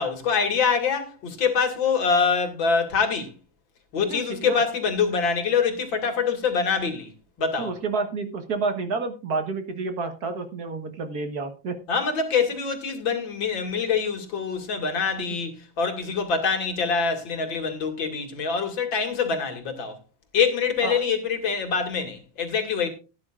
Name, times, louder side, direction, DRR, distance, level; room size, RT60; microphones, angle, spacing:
voice 1, 0.0-3.3 3.9-7.1 7.4-7.7 11.9-20.0 20.3-22.9, left 5 dB, 80° left, 2.8 m, -25 dB
voice 2, 4.1-4.6 7.6-11.8 20.8-21.0, right 4 dB, 55° right, 1.8 m, -29 dB
17.5 x 9.9 x 2.5 m
omnidirectional pair, 2.1 m